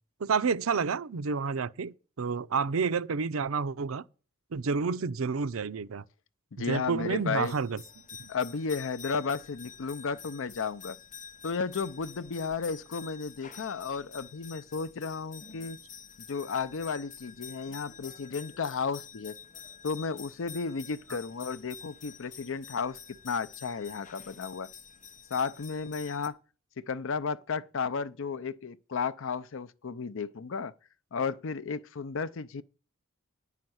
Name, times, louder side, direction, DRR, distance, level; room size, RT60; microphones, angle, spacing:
voice 1, 0.2-4.0 4.5-6.0 6.7-7.8 8.2-8.3, right 5 dB, 90° right, 0.6 m, -29 dB
voice 2, 6.5-7.5 8.3-11.0 11.4-15.8 16.2-19.4 19.8-24.7 25.3-26.4 26.8-30.7 31.1-32.6, left 5 dB, 65° left, 0.6 m, -33 dB
sound 1, 7.3-26.3, left 7 dB, 40° left, 1.0 m, -48 dB
9.8 x 5.7 x 7.8 m
head